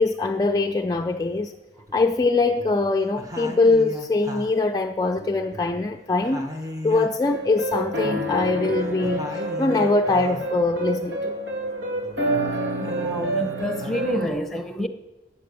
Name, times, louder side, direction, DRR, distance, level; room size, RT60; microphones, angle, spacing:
voice 1, 0.0-1.5 1.9-6.6 6.8-11.3 12.4-12.6, left 3 dB, 20° left, 0.4 m, -22 dB
sound 1, 1.1-1.2 1.8-2.9 3.2-5.9 6.2-10.6 11.0-12.4 12.7-14.0, left 1 dB, 20° right, 1.1 m, -38 dB
sound 2, 7.2-14.3, right 1 dB, 85° right, 2.4 m, -28 dB
voice 2, 12.8-14.9, equal, ahead, 0.9 m, -28 dB
13.0 x 8.4 x 6.9 m
head